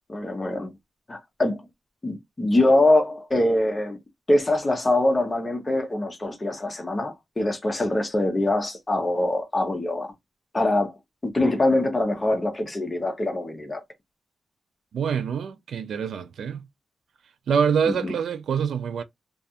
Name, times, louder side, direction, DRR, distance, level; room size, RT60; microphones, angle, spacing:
voice 1, 0.1-0.7 1.1-1.6 2.0-4.0 4.3-10.1 10.5-10.9 11.2-13.8 17.9-18.0, left 1 dB, 20° left, 0.6 m, -23 dB
voice 2, 14.9-16.7 17.5-19.0, right 7 dB, 80° right, 0.3 m, -25 dB
2.4 x 2.3 x 2.7 m
wide cardioid pair, 165°, 0 cm